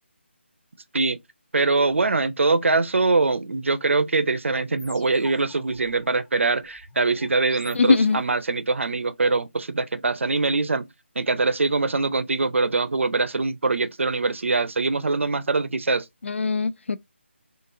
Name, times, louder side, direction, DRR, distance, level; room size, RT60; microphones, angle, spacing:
voice 1, 1.5-10.9 11.2-16.1, right 3 dB, 80° right, 0.6 m, -23 dB
sound 1, 4.8-8.4, left 3 dB, 5° left, 0.5 m, -47 dB
voice 2, 7.7-8.2 16.2-17.0, left 4 dB, 70° left, 0.4 m, -21 dB
3.9 x 3.6 x 2.6 m
figure-of-eight pair, 175°, 7 cm